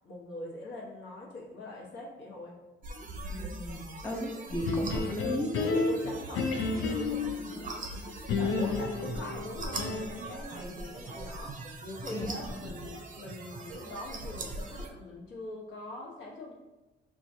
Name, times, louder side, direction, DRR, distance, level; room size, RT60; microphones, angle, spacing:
voice 1, 0.0-2.6 4.1-4.3 5.6-7.9 8.3-16.5, left 2 dB, 70° left, -3 dB, 1.2 m, -43 dB
sound 1, 2.8-14.9, right 2 dB, 40° right, 0.6 m, -41 dB
voice 2, 3.3-5.5 12.1-12.3, equal, 10° left, 1 dB, 0.5 m, -35 dB
sound 2, 4.6-7.4 8.3-10.3, left 4 dB, 85° left, 0.5 m, -31 dB
4.4 x 2.4 x 2.7 m, 1.1 s
cardioid pair, 90°, 20 cm